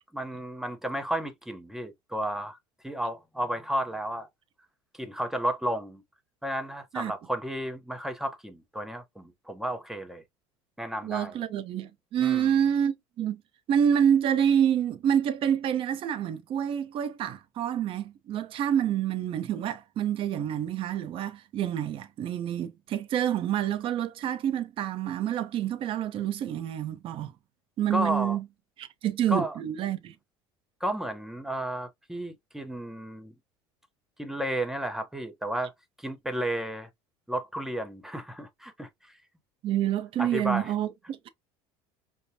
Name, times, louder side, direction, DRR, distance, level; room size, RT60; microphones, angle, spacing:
voice 1, 0.1-2.6 2.8-4.3 5.0-6.0 6.4-10.2 10.8-11.4 12.2-12.5 27.9-28.4 29.3-29.5 30.8-33.3 34.2-35.7 36.0-36.9 37.3-38.9 40.2-40.7, right 1 dB, 5° right, 0.8 m, -32 dB
voice 2, 11.0-13.4 13.7-27.3 27.8-28.4 28.8-30.1 39.6-41.3, right 9 dB, 50° right, 0.7 m, -27 dB
5.3 x 2.2 x 2.8 m
supercardioid pair, 110°, 12 cm